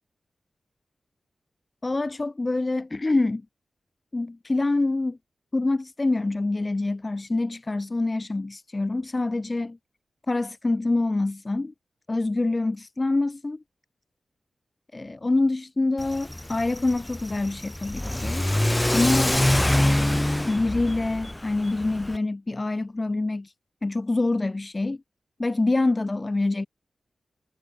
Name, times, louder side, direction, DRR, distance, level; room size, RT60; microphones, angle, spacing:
voice 1, 1.8-3.4 4.1-5.2 5.5-9.8 10.3-11.7 12.1-13.6 14.9-18.5 18.9-19.4 20.4-23.5 23.8-25.0 25.4-26.7, left 2 dB, 30° left, 1.1 m, -26 dB
Car / Accelerating revving vroom, 16.0-22.2, left 1 dB, 10° left, 1.4 m, -25 dB
wide cardioid pair, 80°, 0 cm